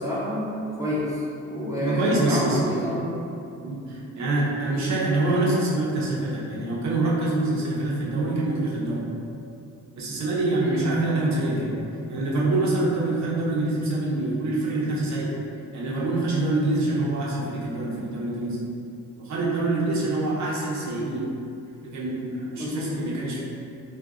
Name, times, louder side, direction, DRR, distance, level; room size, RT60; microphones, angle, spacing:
voice 1, 0.0-3.2 10.6-10.9 22.5-22.9, equal, 10° right, -9 dB, 0.7 m, -28 dB
voice 2, 1.8-2.6 3.6-9.1 10.0-11.8 12.1-15.3 15.7-18.6 19.2-21.3 21.8-23.4, right 2 dB, 65° right, -5 dB, 0.9 m, -25 dB
2.5 x 2.5 x 3.7 m, 2.6 s
cardioid pair, 90°, 30 cm